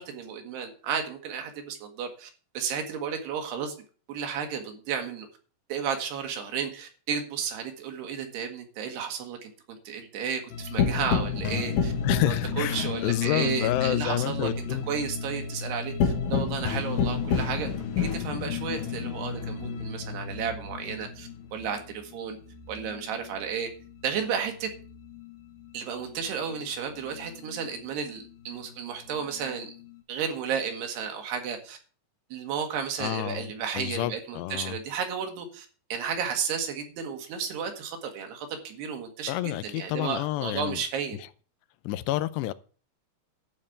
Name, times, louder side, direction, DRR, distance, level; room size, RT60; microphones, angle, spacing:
voice 1, 0.0-2.3 2.6-3.7 4.1-5.3 5.7-11.9 12.2-15.9 16.3-17.7 18.0-22.4 22.7-23.7 24.0-24.7 25.7-29.7 30.1-31.8 32.3-35.6 35.9-41.2, right 7 dB, 75° right, 3.9 m, -33 dB
sound 1, 10.5-23.5 23.8-25.7 26.0-27.7 28.2-30.0, left 6 dB, 60° left, 2.4 m, -31 dB
voice 2, 12.0-14.8 33.0-34.8 39.3-40.8 41.8-42.5, left 15 dB, 85° left, 2.8 m, -29 dB
12.0 x 5.4 x 8.4 m
omnidirectional pair, 4.9 m